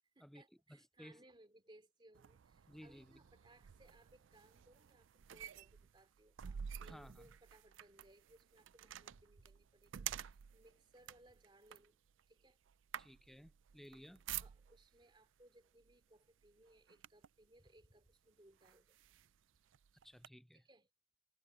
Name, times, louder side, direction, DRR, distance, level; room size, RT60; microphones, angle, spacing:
voice 1, 0.1-12.0 12.3-12.6 14.4-19.0 20.5-20.9, right 1 dB, 25° right, 2.8 m, -66 dB
voice 2, 0.7-1.2 2.7-3.2 6.9-7.3 13.0-14.2 20.0-20.7, equal, ahead, 0.5 m, -57 dB
sound 1, 2.1-15.0 15.8-16.0 16.4-17.4 18.1-18.2 18.6-20.3, right 10 dB, 80° right, 0.4 m, -50 dB
head